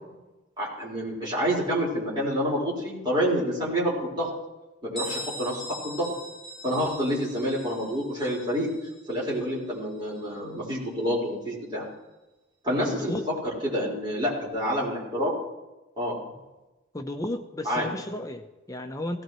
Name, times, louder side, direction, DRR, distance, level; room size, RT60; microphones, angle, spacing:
voice 1, 0.6-4.3 4.8-6.1 6.6-8.7 9.1-11.8 12.6-15.4 16.0-16.2 17.6-17.9, equal, 25° right, -7 dB, 4.5 m, -28 dB
Bell, 5.0-10.5, equal, ahead, 4.2 m, -41 dB
voice 2, 12.8-13.3 16.9-19.2, left 1 dB, 20° left, 5 dB, 0.7 m, -33 dB
17.5 x 16.0 x 3.1 m, 1.0 s
head